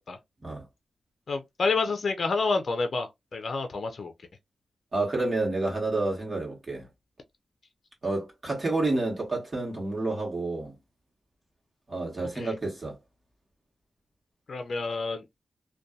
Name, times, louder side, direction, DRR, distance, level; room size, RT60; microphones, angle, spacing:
voice 1, 1.3-4.1 12.4-12.5 14.5-15.2, left 4 dB, 65° left, 0.4 m, -29 dB
voice 2, 4.9-6.9 8.0-10.7 11.9-13.0, right 2 dB, 45° right, 1.2 m, -29 dB
2.6 x 2.2 x 2.2 m
cardioid pair, 50°, 0 cm